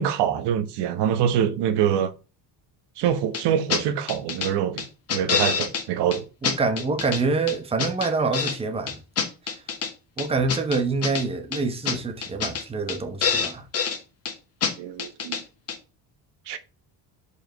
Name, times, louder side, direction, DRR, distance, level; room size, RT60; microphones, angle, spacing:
voice 1, 0.0-2.1 3.0-6.3 14.8-15.4 16.5-16.6, right 9 dB, 75° right, 1.2 m, -25 dB
sound 1, 3.3-3.4 3.7-3.8 4.1-4.5 4.8-5.8 6.1-6.2 6.4-7.2 7.5-8.6 8.9-9.9 10.2-11.2 11.5-11.6 11.8-12.0 12.2-12.6 12.9-13.0 13.2-14.0 14.2-14.3 14.6-14.7 15.0-15.4 15.7-15.8, left 6 dB, 35° left, 1.7 m, -26 dB
voice 2, 6.4-9.0 9.5-9.6 10.2-13.6, right 3 dB, 15° right, 1.0 m, -26 dB
5.1 x 5.0 x 6.2 m
cardioid pair, 165°, 41 cm